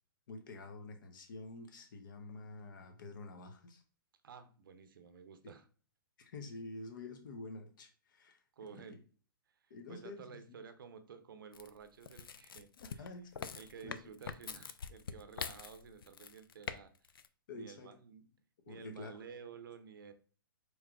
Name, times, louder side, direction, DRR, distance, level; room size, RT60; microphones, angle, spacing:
voice 1, 0.3-3.8 5.4-5.5 6.2-8.4 8.7-9.0 9.7-10.6 12.8-13.5 13.8-14.0 17.5-17.9 18.7-19.2, left 2 dB, 60° left, 5 dB, 1.0 m, -48 dB
voice 2, 4.2-5.6 8.6-9.0 9.9-13.1 13.5-16.9 17.5-18.3 18.7-20.1, right 6 dB, 70° right, 9 dB, 0.7 m, -52 dB
sound 1, 11.5-16.8 17.0-17.3, left 6 dB, 80° left, 0.4 m, -44 dB
4.6 x 3.2 x 2.4 m, 0.40 s
hypercardioid pair, 125°, 12 cm